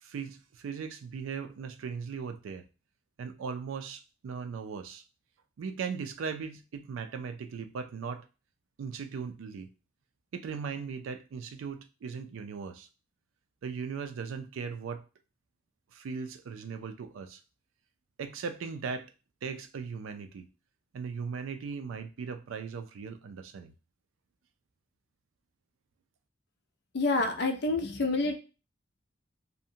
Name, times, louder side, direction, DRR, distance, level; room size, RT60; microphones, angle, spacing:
voice 1, 0.0-2.6 3.2-5.0 5.6-8.3 8.8-9.7 10.3-12.9 13.6-15.0 15.9-17.4 18.2-19.1 19.4-20.5 20.9-23.7, right 5 dB, 85° right, 0.3 m, -38 dB
voice 2, 26.9-28.4, left 3 dB, 55° left, 0.4 m, -28 dB
2.6 x 2.1 x 2.7 m
head